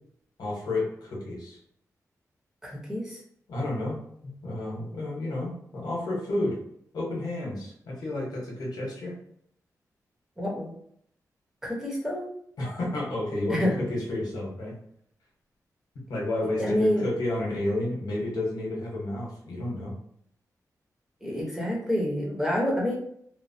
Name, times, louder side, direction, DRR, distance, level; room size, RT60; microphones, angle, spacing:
voice 1, 0.4-1.6 3.5-6.6 6.9-9.1 12.6-14.7 16.1-19.9, left 1 dB, 85° left, -4 dB, 1.0 m, -31 dB
voice 2, 2.6-3.2 10.4-10.8 11.6-12.3 13.5-13.8 16.6-17.1 21.2-22.9, left 1 dB, 5° right, -4 dB, 0.9 m, -28 dB
3.1 x 2.0 x 2.7 m, 0.68 s
wide cardioid pair, 105°, 6 cm